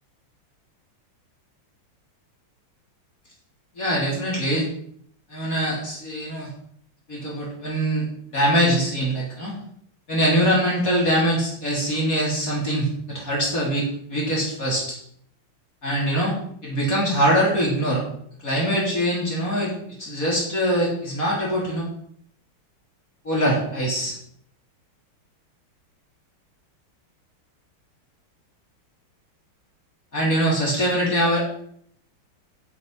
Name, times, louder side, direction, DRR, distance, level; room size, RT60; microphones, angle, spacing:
voice 1, 3.8-4.7 5.3-6.5 7.1-9.6 10.1-15.0 15.8-16.4 16.6-18.0 18.4-19.7 20.0-21.9 23.2-24.2 30.1-31.5, equal, 40° left, -5 dB, 4.0 m, -23 dB
15.0 x 5.6 x 5.7 m, 0.66 s
omnidirectional pair, 2.4 m